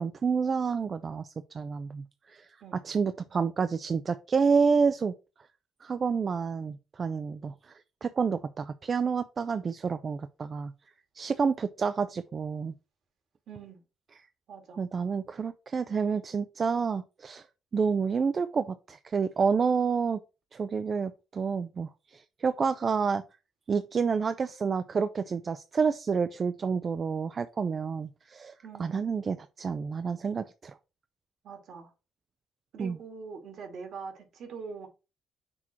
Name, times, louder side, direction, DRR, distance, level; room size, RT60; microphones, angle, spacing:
voice 1, 0.0-5.1 5.8-10.7 11.2-12.7 14.8-17.5 17.7-20.2 20.5-23.2 23.7-28.5 28.8-30.7 32.8-33.0, right 5 dB, 40° right, 0.4 m, -29 dB
voice 2, 13.5-13.8 14.5-14.8 28.6-29.1 31.4-31.9 32.7-34.9, right 5 dB, 70° right, 2.1 m, -43 dB
6.1 x 3.1 x 5.7 m
cardioid pair, 90°, 0 cm